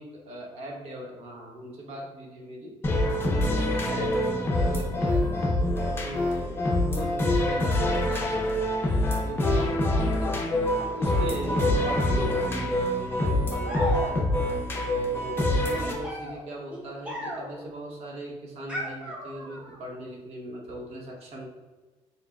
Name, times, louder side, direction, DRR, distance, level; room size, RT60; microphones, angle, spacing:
voice 1, 0.0-5.5 6.0-10.4 10.9-14.4 15.1-21.5, equal, 60° right, 0 dB, 0.8 m, -39 dB
sound 1, 2.8-15.9, left 1 dB, 20° left, 0.5 m, -25 dB
sound 2, 13.6-14.5 15.7-17.7 18.7-19.8, equal, 10° right, 0.8 m, -36 dB
4.7 x 3.2 x 2.2 m, 1.3 s
cardioid pair, 165°, 12 cm